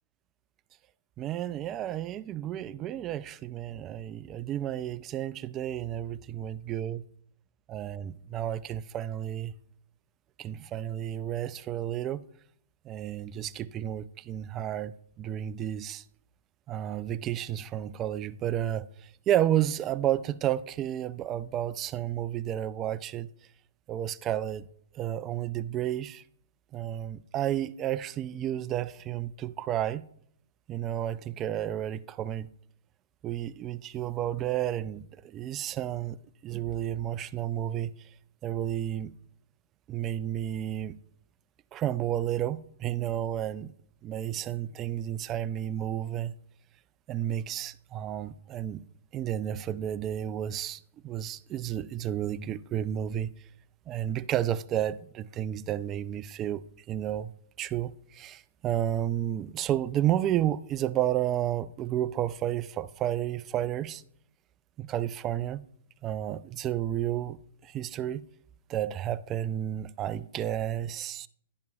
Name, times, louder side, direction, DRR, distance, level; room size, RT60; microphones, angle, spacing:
voice 1, 1.2-7.0 7.7-9.5 10.4-12.2 12.9-16.0 16.7-23.3 23.9-24.6 24.9-26.2 26.7-30.0 30.7-32.5 33.2-36.2 36.4-37.9 38.4-39.1 39.9-41.0 41.7-43.7 44.0-46.3 47.1-48.9 49.1-53.3 53.9-57.3 57.6-64.0 64.8-65.6 66.0-68.2 68.7-71.3, right 11 dB, 20° right, 0.3 m, -31 dB
10.5 x 10.5 x 2.4 m
hypercardioid pair, 150°, 0 cm